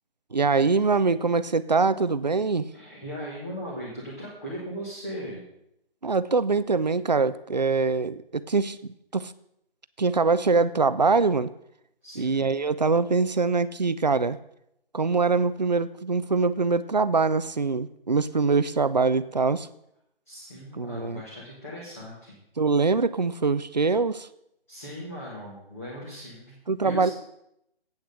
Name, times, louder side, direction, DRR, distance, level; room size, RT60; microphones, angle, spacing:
voice 1, 0.3-2.7 6.0-9.3 10.0-11.5 12.2-14.4 14.9-19.7 20.7-21.2 22.6-24.3 26.7-27.1, right 4 dB, 45° right, 14 dB, 0.5 m, -23 dB
voice 2, 2.7-5.4 12.0-12.5 20.2-22.4 24.7-26.5 26.8-27.1, equal, 15° left, -6 dB, 1.4 m, -38 dB
8.7 x 6.2 x 7.7 m, 0.78 s
hypercardioid pair, 175°, 30 cm